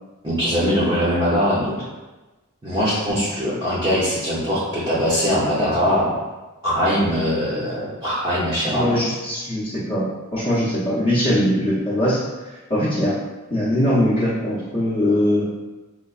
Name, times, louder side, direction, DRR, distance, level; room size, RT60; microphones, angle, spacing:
voice 1, 0.2-1.7 2.6-6.1 6.6-9.0, equal, 20° right, -9 dB, 0.7 m, -21 dB
voice 2, 8.7-10.0 10.3-12.2 12.7-13.2 13.5-15.5, left 1 dB, 25° left, -11 dB, 0.8 m, -21 dB
4.5 x 2.2 x 2.4 m, 1.1 s
head